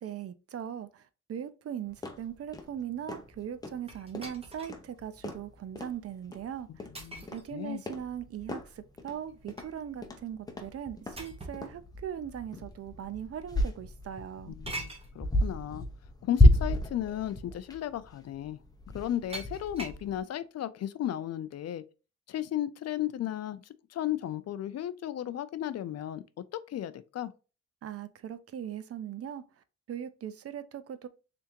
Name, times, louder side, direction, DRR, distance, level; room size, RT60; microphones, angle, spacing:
voice 1, 0.0-6.9 7.3-14.6 27.8-29.4 29.9-31.1, right 9 dB, 55° right, 0.5 m, -39 dB
sound 1, 1.9-20.2, left 1 dB, 15° left, 0.7 m, -32 dB
sound 2, 3.9-4.8 5.4-5.5 7.0-7.5 9.1-9.8 11.2-11.7 12.7-12.8 14.7-15.1 16.5-16.6 17.1-17.3 19.3-20.1, right 2 dB, 20° right, 1.0 m, -43 dB
voice 2, 6.7-7.8 14.5-15.8 16.2-18.6 18.9-21.8 22.3-23.6 23.9-26.2 26.5-27.3, left 11 dB, 60° left, 0.4 m, -35 dB
3.6 x 3.5 x 2.9 m
wide cardioid pair, 125°, 29 cm